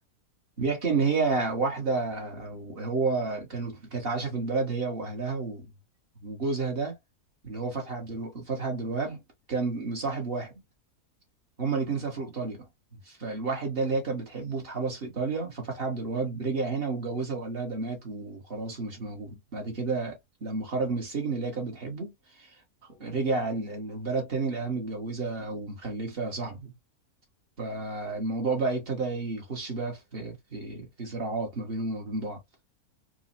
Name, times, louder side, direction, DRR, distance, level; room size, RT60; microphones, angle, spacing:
voice 1, 0.6-5.7 6.2-6.9 7.4-9.2 9.5-10.5 11.6-12.7 13.0-22.5 23.0-26.7 27.6-32.4, right 3 dB, 40° right, 1.7 m, -31 dB
4.6 x 2.4 x 2.6 m
omnidirectional pair, 1.6 m